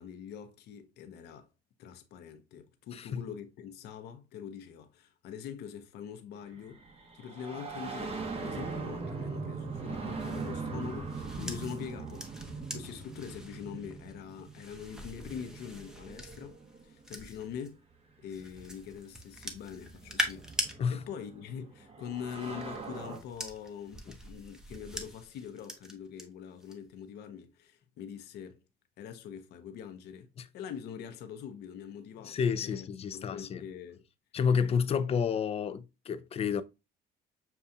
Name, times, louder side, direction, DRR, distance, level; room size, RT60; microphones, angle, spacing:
voice 1, 0.0-1.5 1.8-6.8 7.1-12.3 12.7-17.8 18.2-20.5 20.9-28.6 29.0-32.9 33.1-34.1, left 8 dB, 75° left, 0.8 m, -44 dB
sound 1, 6.4-17.1 18.3-18.4 19.4-23.2, right 4 dB, 35° right, 1.1 m, -41 dB
sound 2, 10.1-17.7 18.3-20.7 22.0-26.2 26.6-27.0, equal, 5° right, 0.8 m, -42 dB
voice 2, 32.2-33.6 34.3-36.6, left 6 dB, 35° left, 0.5 m, -30 dB
6.8 x 2.4 x 2.7 m
cardioid pair, 110°, 17 cm